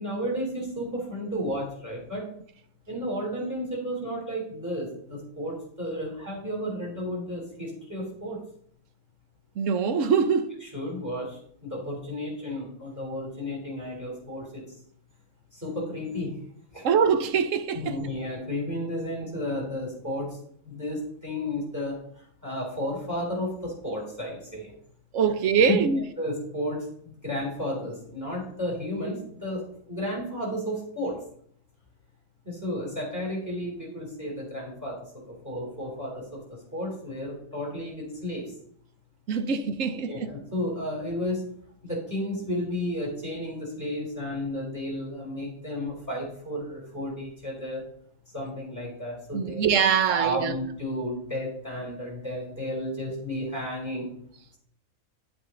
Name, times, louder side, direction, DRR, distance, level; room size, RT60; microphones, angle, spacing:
voice 1, 0.0-2.3 2.9-8.4 10.6-14.6 15.6-16.3 16.7-16.8 17.7-20.4 20.7-22.0 22.4-24.7 25.7-25.8 26.2-29.6 29.9-31.2 32.4-35.0 35.4-36.4 36.7-38.4 39.9-41.4 41.8-47.8 48.3-49.7 50.1-54.1, left 1 dB, 10° right, 3.7 m, -32 dB
voice 2, 9.6-10.6 16.8-18.0 25.1-26.0 39.3-40.3 49.3-50.6, right 6 dB, 70° right, 1.1 m, -23 dB
9.5 x 8.0 x 3.8 m
omnidirectional pair, 1.4 m